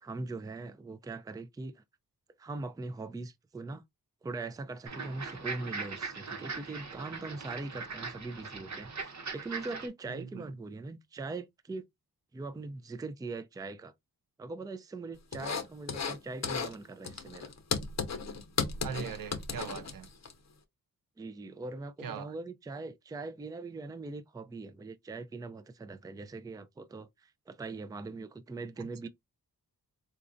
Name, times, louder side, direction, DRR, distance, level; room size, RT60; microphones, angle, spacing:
voice 1, 0.0-1.8 2.4-3.8 4.2-11.8 12.3-13.9 14.4-17.5 21.2-29.1, right 3 dB, 10° right, 0.3 m, -41 dB
sound 1, 4.9-9.9, right 4 dB, 50° right, 0.9 m, -40 dB
voice 2, 10.1-10.5 18.8-20.1 22.0-22.3 28.8-29.1, right 7 dB, 65° right, 0.5 m, -40 dB
sound 2, 15.3-16.2 16.4-16.8 17.0-20.3, left 5 dB, 45° left, 0.7 m, -35 dB
4.1 x 2.4 x 2.5 m
cardioid pair, 70°, 36 cm